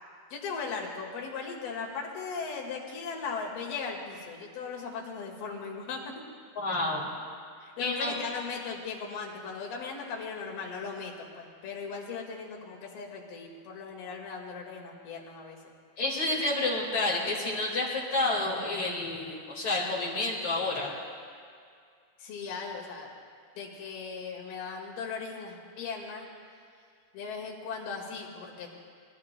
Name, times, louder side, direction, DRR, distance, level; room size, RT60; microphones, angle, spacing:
voice 1, 0.3-6.2 7.6-15.6 22.2-23.1 23.6-26.3 27.1-28.7, left 5 dB, 80° left, -1 dB, 3.7 m, -38 dB
voice 2, 6.6-7.1 7.8-8.2 16.0-20.9, left 2 dB, 40° left, -4 dB, 2.3 m, -29 dB
22.5 x 20.5 x 2.2 m, 2.2 s
omnidirectional pair, 4.3 m